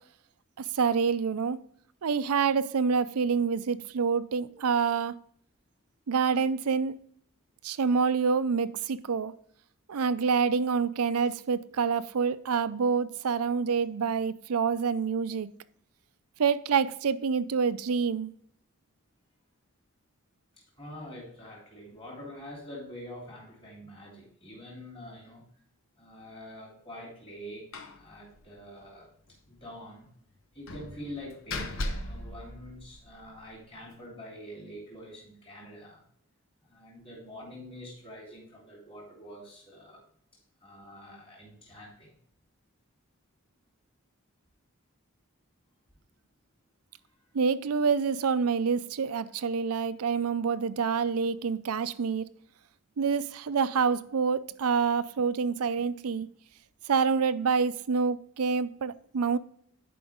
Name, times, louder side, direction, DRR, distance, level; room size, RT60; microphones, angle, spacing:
voice 1, 0.6-1.6 2.0-5.2 6.1-6.9 7.6-9.3 9.9-15.5 16.4-18.3 47.3-52.3 53.0-56.3 56.9-59.4, right 5 dB, 85° right, 0.5 m, -27 dB
voice 2, 20.8-25.4 25.9-29.1 29.5-30.1 30.5-36.0 36.6-40.0 40.6-42.1, equal, 25° left, 3.2 m, -45 dB
Slam, 27.7-28.0 28.3-28.4 28.8-28.9 30.7-33.3, left 1 dB, 65° left, 0.9 m, -37 dB
11.0 x 5.1 x 3.6 m
head